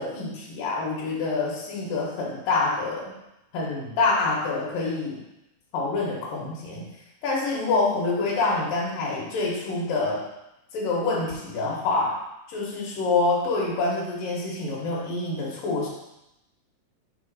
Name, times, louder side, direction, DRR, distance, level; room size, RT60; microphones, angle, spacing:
voice 1, 0.0-3.1 3.5-5.2 5.7-6.9 7.2-10.3 10.7-12.2 12.5-15.9, left 3 dB, 75° left, -3 dB, 2.7 m, -26 dB
5.6 x 3.3 x 5.3 m, 0.88 s
omnidirectional pair, 4.0 m